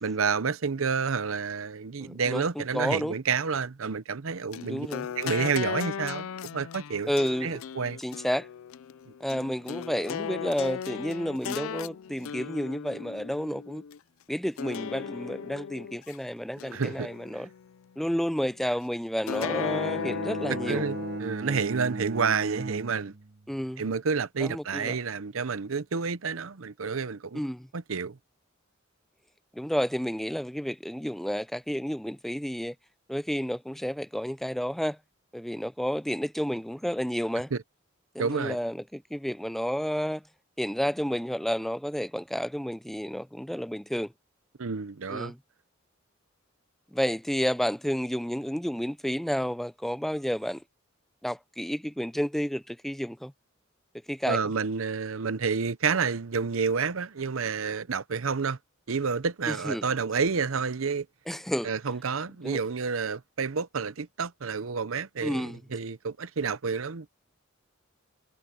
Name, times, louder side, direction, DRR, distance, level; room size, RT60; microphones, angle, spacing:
voice 1, 0.0-4.9 5.2-6.3 6.5-7.1 7.4-8.0 16.7-17.1 20.7-23.1 23.8-27.4 27.7-28.2 37.5-37.6 38.2-38.6 44.6-45.3 54.3-58.6 58.9-61.1 61.6-67.1, right 5 dB, 75° right, 0.7 m, -29 dB
voice 2, 2.0-3.2 4.6-5.1 7.1-7.5 8.0-8.5 9.2-13.8 14.3-17.5 18.0-20.8 23.5-23.8 24.4-25.0 27.3-27.7 29.5-32.7 33.1-35.0 35.3-37.5 38.1-40.2 40.6-44.1 45.1-45.4 46.9-50.6 51.2-53.3 54.1-54.4 59.5-59.8 61.3-61.7 62.4-62.6 65.2-65.6, equal, ahead, 0.4 m, -31 dB
sound 1, 4.5-14.0 14.6-16.2 16.6-17.7 19.3-21.2, left 8 dB, 80° left, 0.4 m, -36 dB
Bowed string instrument, 19.3-23.6, right 3 dB, 50° right, 1.0 m, -37 dB
head